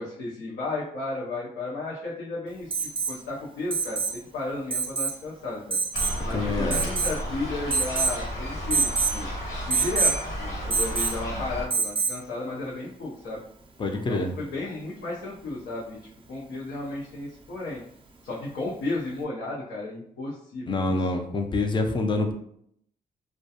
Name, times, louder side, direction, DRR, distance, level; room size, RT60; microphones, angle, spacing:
voice 1, 0.0-5.8 6.2-9.3 9.7-13.4 13.9-16.0 16.3-17.8 18.2-21.1, left 2 dB, 90° left, -6 dB, 0.6 m, -34 dB
Alarm, 2.7-3.2 3.7-4.2 4.7-5.2 5.7-6.2 6.7-7.2 7.7-8.2 8.7-9.2 9.7-10.2 10.7-11.2 11.7-12.2 13.9-14.0, right 4 dB, 35° right, 0.5 m, -26 dB
sound 1, 5.9-11.7, equal, 70° left, 1.2 m, -32 dB
voice 2, 6.3-6.8 13.8-14.3 20.7-22.3, left 2 dB, 30° left, 5 dB, 0.4 m, -26 dB
2.3 x 2.2 x 2.7 m, 0.67 s
cardioid pair, 70°, 16 cm